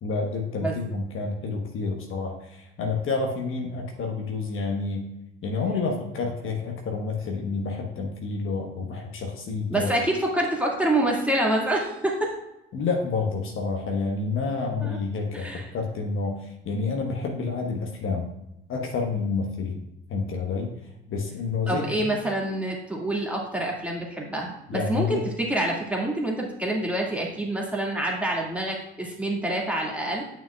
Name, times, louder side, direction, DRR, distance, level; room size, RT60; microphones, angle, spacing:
voice 1, 0.0-5.1 5.4-9.9 12.7-18.3 18.7-19.8 20.1-20.7 21.1-22.1 24.7-25.2, left 4 dB, 45° left, 1 dB, 1.2 m, -29 dB
voice 2, 9.7-12.3 14.8-15.0 15.3-15.7 21.7-30.2, right 1 dB, 5° right, -2 dB, 2.0 m, -27 dB
8.9 x 6.3 x 2.4 m, 0.88 s
hypercardioid pair, 60°, 29 cm